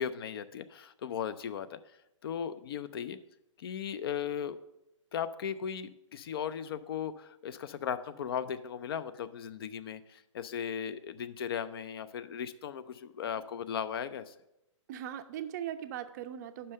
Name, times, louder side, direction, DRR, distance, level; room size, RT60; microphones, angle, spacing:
voice 1, 0.0-1.8 2.2-3.2 3.6-4.6 5.1-14.3, left 8 dB, 45° left, 14 dB, 0.4 m, -37 dB
voice 2, 14.9-16.7, right 10 dB, 35° right, 10 dB, 0.4 m, -39 dB
5.5 x 5.3 x 6.5 m, 0.89 s
figure-of-eight pair, 125°, 17 cm